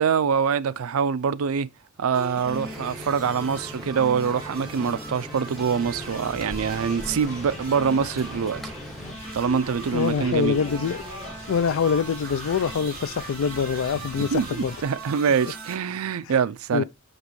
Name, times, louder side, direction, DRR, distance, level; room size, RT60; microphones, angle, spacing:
voice 1, 0.0-1.7 2.0-8.7 9.3-10.6 14.2-16.8, right 6 dB, 85° right, 0.4 m, -24 dB
sound 1, 2.1-15.7, right 2 dB, 45° right, 2.7 m, -39 dB
sound 2, 2.4-9.2, equal, ahead, 0.6 m, -40 dB
sound 3, 5.8-14.8, left 1 dB, 35° left, 1.7 m, -41 dB
voice 2, 9.9-11.0 11.5-14.7 16.7-16.8, left 6 dB, 65° left, 0.4 m, -24 dB
6.0 x 5.2 x 3.0 m
head